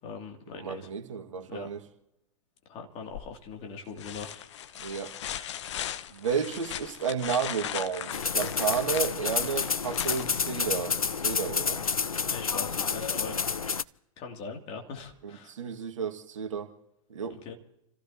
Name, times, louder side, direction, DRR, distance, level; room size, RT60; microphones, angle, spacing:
voice 1, 0.0-0.9 1.5-1.7 2.7-4.4 12.3-13.4 14.2-15.5 17.3-17.6, left 5 dB, 35° left, 2.7 m, -41 dB
voice 2, 0.5-1.8 4.8-5.1 6.1-10.9 11.2-11.8 15.2-16.7 17.1-17.4, right 7 dB, 65° right, 1.9 m, -32 dB
sound 1, 3.1-3.5 4.0-10.9 12.7-12.8, left 10 dB, 55° left, 0.9 m, -38 dB
sound 2, 8.1-13.8, left 5 dB, 85° left, 0.5 m, -29 dB
29.5 x 15.5 x 2.9 m
figure-of-eight pair, 105°, 18 cm